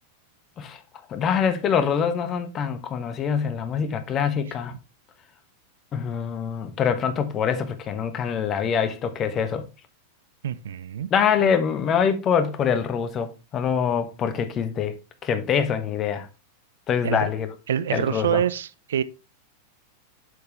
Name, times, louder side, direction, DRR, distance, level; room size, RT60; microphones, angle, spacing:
voice 1, 1.1-4.7 5.9-9.7 11.1-14.9 15.2-16.3 16.9-17.5 17.9-18.4, left 7 dB, 30° left, 0.9 m, -24 dB
voice 2, 10.4-11.1 17.0-17.3 17.7-19.0, right 9 dB, 60° right, 0.4 m, -26 dB
7.7 x 5.6 x 3.3 m
figure-of-eight pair, 90°, 0 cm